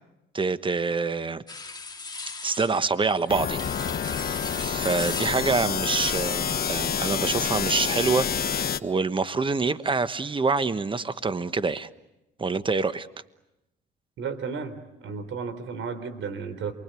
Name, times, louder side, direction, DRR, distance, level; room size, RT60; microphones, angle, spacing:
voice 1, 0.3-1.4 2.4-3.7 4.0-11.9 12.4-13.1, right 4 dB, 25° right, 13 dB, 1.2 m, -26 dB
sound 1, 1.5-8.1, left 4 dB, 20° left, 2.1 m, -38 dB
sound 2, 3.3-8.8, left 8 dB, 45° left, 1.3 m, -28 dB
voice 2, 14.2-16.7, right 5 dB, 65° right, 12 dB, 3.7 m, -33 dB
28.0 x 23.5 x 9.1 m, 0.94 s
cardioid pair, 85°, 21 cm